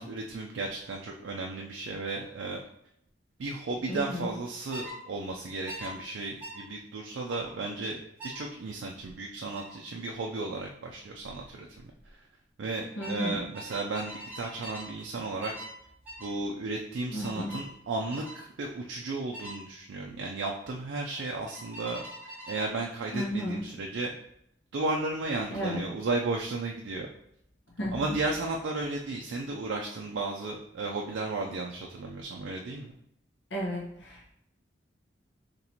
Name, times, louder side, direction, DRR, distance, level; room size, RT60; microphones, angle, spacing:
voice 1, 0.0-2.6 3.4-11.9 12.6-15.5 16.2-22.0 22.5-24.1 24.7-27.1 27.9-32.9, right 3 dB, 75° right, 0 dB, 0.4 m, -34 dB
voice 2, 3.9-4.3 13.0-13.4 17.1-17.5 23.1-23.6 25.5-25.8 27.8-28.2 33.5-34.3, equal, 75° left, -2 dB, 1.0 m, -33 dB
sound 1, 4.7-5.0 5.7-5.9 6.4-6.6 7.3-7.5 8.2-8.4 9.5-9.7 11.2-11.4 11.7-12.1 13.0-14.9 15.4-15.8 16.1-16.4 17.2-17.7 18.1-18.4 19.3-19.6 21.5-22.7, equal, 10° right, 1.1 m, -43 dB
4.2 x 2.9 x 2.8 m, 0.75 s
head